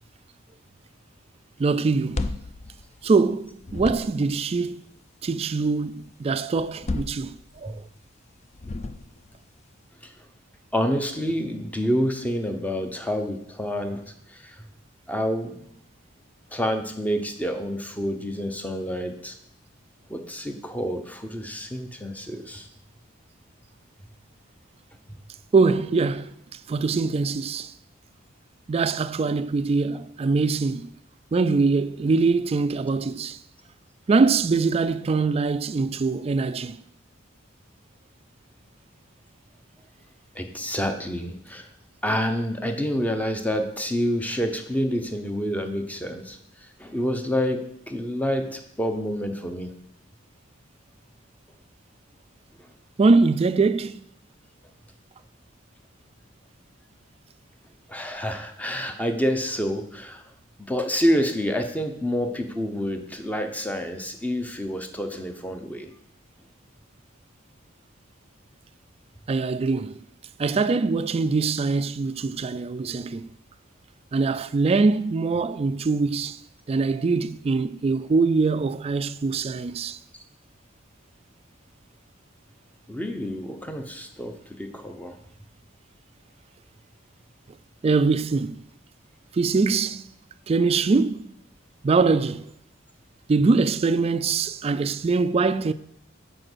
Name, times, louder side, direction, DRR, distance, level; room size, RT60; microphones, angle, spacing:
voice 1, 1.6-2.3 3.0-4.8 5.2-7.8 25.5-26.3 26.7-27.7 28.7-30.9 31.3-33.4 34.1-36.8 53.0-54.0 69.3-70.0 70.4-73.3 74.1-76.4 76.7-80.0 87.8-88.6 89.3-90.0 90.5-91.3 91.8-92.5 93.3-95.7, right 4 dB, 30° right, 0.3 m, -23 dB
sound 1, 1.9-3.3 3.6-4.4 6.6-7.8 8.5-9.4, left 2 dB, 35° left, 0.4 m, -33 dB
voice 2, 10.7-14.0 14.3-14.6 15.1-15.6 16.5-19.3 20.1-22.7 25.1-25.2 40.3-41.7 42.0-49.7 57.9-60.2 60.7-65.9 82.9-85.1, equal, 10° left, 0.8 m, -28 dB
7.6 x 4.9 x 6.2 m
head